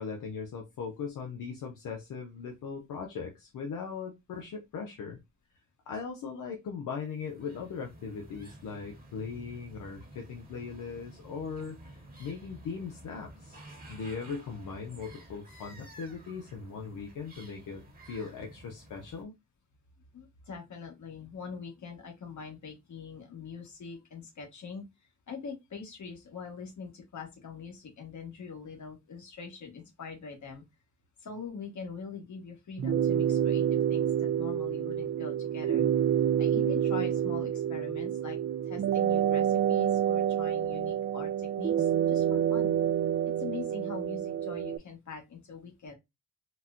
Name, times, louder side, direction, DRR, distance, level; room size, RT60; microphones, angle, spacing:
voice 1, 0.0-5.2 5.9-13.6 13.9-19.3, left 5 dB, 85° left, 1 dB, 0.7 m, -39 dB
sound 1, 7.1-19.2, right 1 dB, 30° right, 1.2 m, -51 dB
voice 2, 20.1-24.8 25.3-30.6 31.2-35.9 36.4-38.4 38.6-42.7 43.3-45.9, left 5 dB, 65° left, 3 dB, 1.3 m, -43 dB
sound 2, 32.8-44.8, right 10 dB, 45° right, 0.4 m, -28 dB
4.1 x 2.1 x 2.3 m, 0.21 s
cardioid pair, 75°, 31 cm